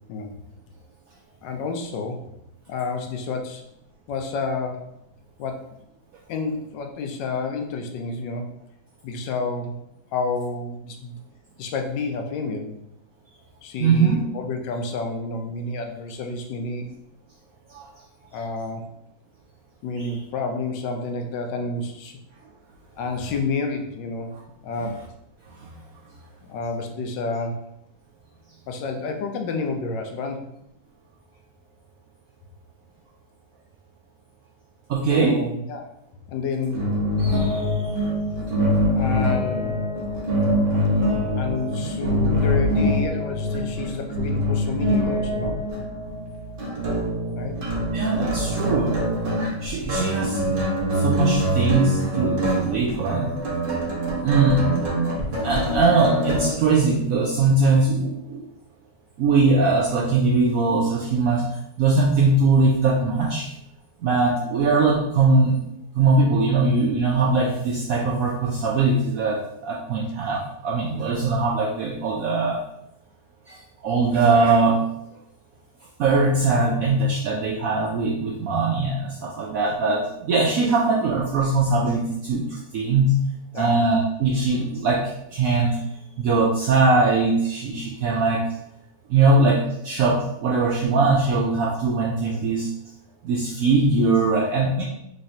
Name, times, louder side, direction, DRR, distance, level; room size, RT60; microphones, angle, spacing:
voice 1, 1.4-2.3 2.7-3.6 4.1-4.9 5.4-5.7 6.3-8.5 9.0-9.8 10.1-11.1 11.6-12.7 13.6-16.9 18.3-18.9 19.8-22.2 23.0-24.3 24.6-25.0 26.5-27.7 28.7-30.5 35.1-35.9 36.3-37.0 38.9-39.8 41.3-45.6 47.3-47.6 83.5-83.8, left 3 dB, 80° left, 4 dB, 1.3 m, -29 dB
voice 2, 13.8-14.2 17.7-17.9 20.0-20.1 34.9-35.4 37.2-37.6 47.9-49.0 49.6-50.6 50.9-53.4 54.2-54.6 55.4-58.4 59.2-61.5 61.8-63.5 64.0-65.6 66.0-72.6 73.5-74.9 76.0-83.2 83.5-85.8 86.2-88.4 89.1-92.7 93.2-94.8, right 3 dB, 75° right, -2 dB, 0.8 m, -21 dB
sound 1, 36.7-56.5, equal, 45° right, 0.7 m, -24 dB
4.0 x 3.1 x 2.7 m, 0.79 s
omnidirectional pair, 2.0 m